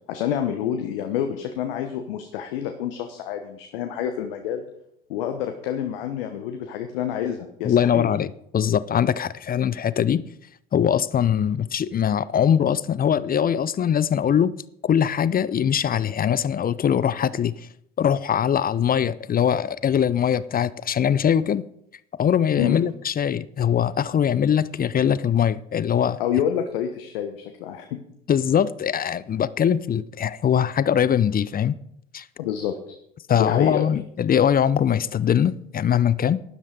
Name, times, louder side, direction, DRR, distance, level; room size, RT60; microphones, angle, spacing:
voice 1, 0.1-4.6 5.1-8.1 22.6-22.8 26.2-28.0 32.4-32.9 33.4-33.9, left 9 dB, 70° left, 1.2 m, -28 dB
voice 2, 7.6-10.2 10.7-14.5 14.8-17.7 18.0-21.6 22.2-26.2 28.3-31.8 32.1-32.3 33.3-36.4, left 8 dB, 30° left, 0.6 m, -22 dB
12.0 x 11.0 x 5.1 m
figure-of-eight pair, 60°, 29 cm